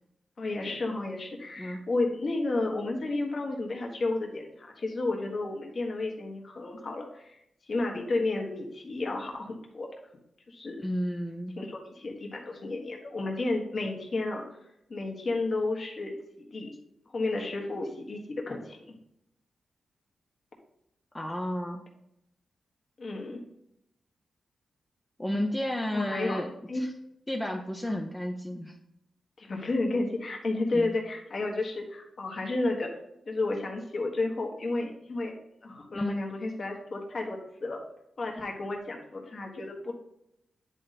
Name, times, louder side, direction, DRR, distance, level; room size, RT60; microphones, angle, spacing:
voice 1, 0.4-7.4 7.7-9.9 10.5-10.8 11.6-14.4 14.9-16.1 16.5-16.7 17.1-19.0 23.0-23.4 25.9-26.4 26.7-26.9 27.9-28.0 29.4-32.9 33.2-35.3 35.6-37.8 38.2-39.9, left 2 dB, 40° left, 1 dB, 1.5 m, -32 dB
voice 2, 10.8-11.6 21.1-21.8 25.2-26.5 26.8-26.9 27.3-28.8 30.7-31.0 35.9-36.2, left 1 dB, 10° left, 2 dB, 0.6 m, -32 dB
9.9 x 3.9 x 4.2 m, 0.80 s
wide cardioid pair, 135°, 0 cm